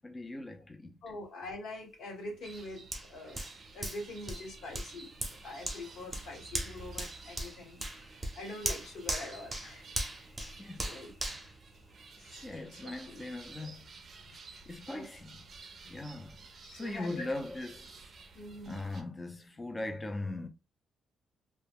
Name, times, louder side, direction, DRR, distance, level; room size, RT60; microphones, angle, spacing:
voice 1, 0.0-1.0 10.6-10.9 12.4-13.9 14.7-15.4 15.8-16.4 16.8-18.0 18.7-20.5, left 2 dB, 20° left, 0.5 m, -40 dB
voice 2, 1.0-3.4 3.7-9.9 10.2-10.3 10.8-11.1 12.2-12.8 13.1-13.3 14.2-14.3 14.9-15.1 16.6-17.3 18.3-18.8, left 2 dB, 80° left, 1.1 m, -44 dB
sound 1, 2.4-19.0, right 4 dB, 50° right, 0.5 m, -53 dB
Hands, 2.9-12.4 12.9-13.0, right 1 dB, 15° right, 0.7 m, -40 dB
2.1 x 2.1 x 3.5 m
cardioid pair, 90°, 0 cm